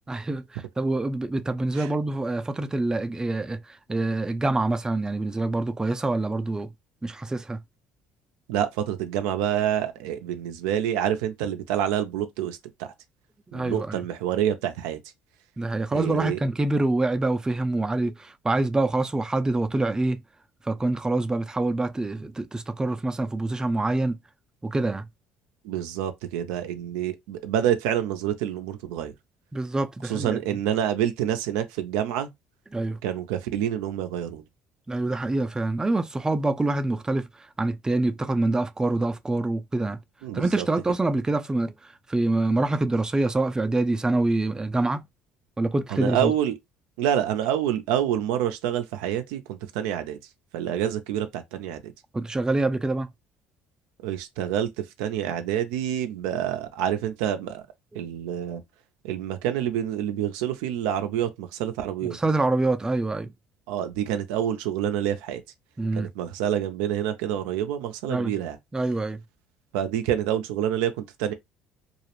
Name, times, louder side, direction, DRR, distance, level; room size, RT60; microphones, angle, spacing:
voice 1, 0.1-6.7 7.0-7.6 13.5-14.0 15.6-20.2 20.6-24.2 24.6-25.1 29.5-30.4 32.7-33.0 34.9-37.3 37.6-40.0 40.3-45.0 45.6-46.3 52.1-53.1 57.9-58.0 62.0-63.3 65.8-66.1 68.1-68.3 68.7-69.2, right 2 dB, 15° right, 0.4 m, -26 dB
voice 2, 8.5-12.6 13.5-15.0 15.9-16.4 25.7-29.1 30.1-32.3 33.0-34.4 40.2-40.6 45.9-46.5 47.0-50.2 50.5-51.8 54.0-54.7 55.0-57.6 58.0-58.6 59.0-62.2 63.7-65.4 66.0-68.6 69.7-71.3, right 10 dB, 80° right, 0.4 m, -27 dB
2.3 x 2.0 x 2.9 m
supercardioid pair, 75°, 5 cm